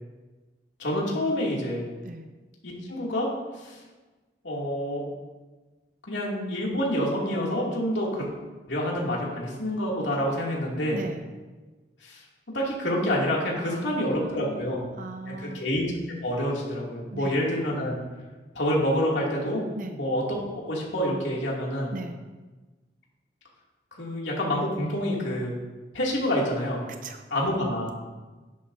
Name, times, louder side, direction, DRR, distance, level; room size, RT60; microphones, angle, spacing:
voice 1, 0.8-1.8 2.6-3.3 3.6-3.8 4.4-5.0 6.1-8.3 8.7-11.0 12.0-12.2 12.5-14.8 15.3-15.9 16.2-17.9 18.5-19.6 19.9-20.4 20.7-21.9 24.0-25.5 25.9-26.8 27.3-27.9, equal, 85° left, -3 dB, 2.6 m, -27 dB
voice 2, 10.9-11.2 13.6-15.6 17.1-17.4 19.7-20.0 21.9-22.2 26.9-27.3, right 2 dB, 45° right, 6 dB, 0.6 m, -38 dB
11.5 x 10.0 x 2.7 m, 1.2 s
head